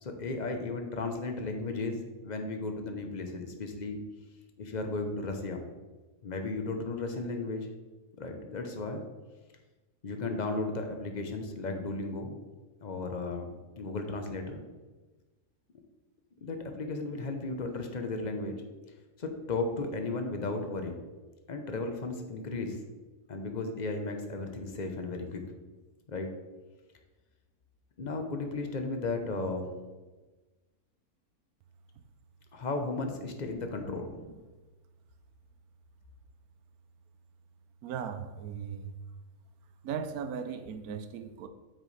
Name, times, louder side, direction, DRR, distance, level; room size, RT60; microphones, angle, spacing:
voice 1, 0.0-4.0 4.6-5.6 6.2-7.7 8.2-9.0 10.0-12.3 12.8-14.6 16.4-18.5 19.2-21.0 21.5-22.8 23.3-25.4 26.1-26.3 28.0-29.7 32.5-34.1, left 3 dB, 40° left, 5 dB, 0.8 m, -35 dB
voice 2, 37.8-38.9 39.8-41.5, right 7 dB, 85° right, 9 dB, 1.1 m, -37 dB
8.2 x 6.4 x 3.2 m, 1.2 s
omnidirectional pair, 1.6 m